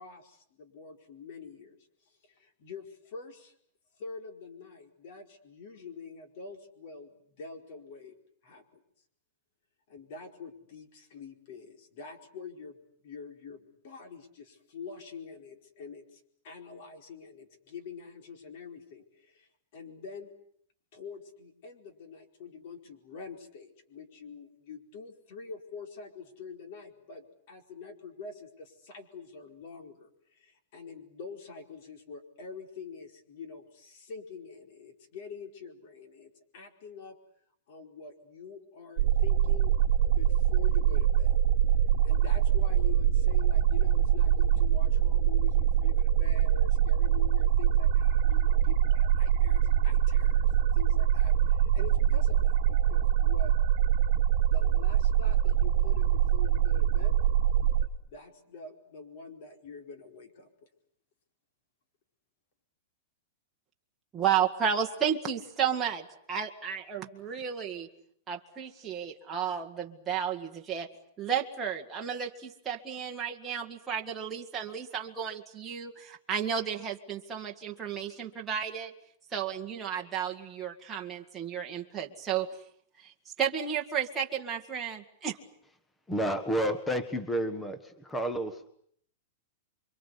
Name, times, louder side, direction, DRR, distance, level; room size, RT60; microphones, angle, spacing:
voice 1, 0.0-1.8 2.2-3.5 4.0-7.1 7.4-8.2 8.4-8.8 9.9-12.8 13.0-20.3 20.9-37.2 37.7-39.7 40.0-41.4 42.0-53.5 54.5-57.1 58.0-60.5, left 4 dB, 45° left, 5 dB, 4.7 m, -46 dB
sound 1, 39.0-57.9, right 10 dB, 50° right, 1.8 m, -24 dB
voice 2, 64.1-67.9 68.3-70.9 71.2-78.9 79.3-82.5 83.0-83.1 83.4-85.4, right 8 dB, 10° right, 0 dB, 1.9 m, -32 dB
voice 3, 86.1-88.7, right 1 dB, 5° left, 10 dB, 1.5 m, -30 dB
28.0 x 24.5 x 8.4 m, 0.64 s
supercardioid pair, 170°, 0 cm